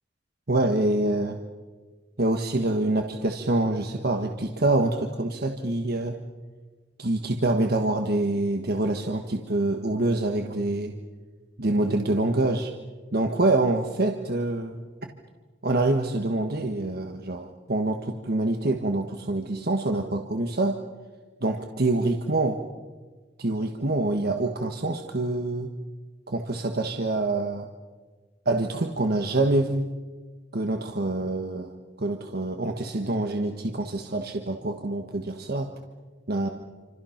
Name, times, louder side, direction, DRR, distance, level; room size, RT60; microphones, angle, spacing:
voice 1, 0.5-1.4 2.2-6.1 7.0-10.9 11.6-12.7 13.1-15.1 15.6-20.8 21.4-22.6 23.4-25.7 26.3-27.7 28.4-29.9 30.5-31.7 32.0-35.7 36.3-36.5, right 2 dB, 55° right, 4 dB, 1.4 m, -26 dB
28.0 x 26.0 x 5.9 m, 1.4 s
head